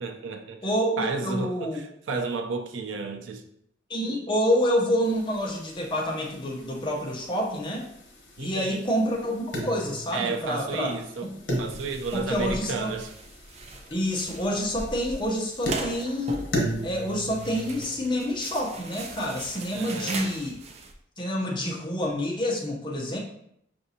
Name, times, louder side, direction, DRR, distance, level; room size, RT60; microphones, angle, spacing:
voice 1, 0.0-0.7 1.0-3.4 8.4-8.8 10.1-11.3 11.6-13.1 19.7-20.3, right 4 dB, 90° right, 6 dB, 0.5 m, -32 dB
voice 2, 0.6-1.8 3.9-7.9 8.4-10.9 11.3-11.4 12.1-12.9 13.9-16.4 16.8-20.5 21.2-23.2, equal, 25° left, -1 dB, 0.7 m, -28 dB
sound 1, 5.0-17.8, equal, 75° left, 1.0 m, -37 dB
sound 2, 11.7-20.9, right 3 dB, 35° right, 0.4 m, -39 dB
5.8 x 2.6 x 2.7 m, 0.73 s
head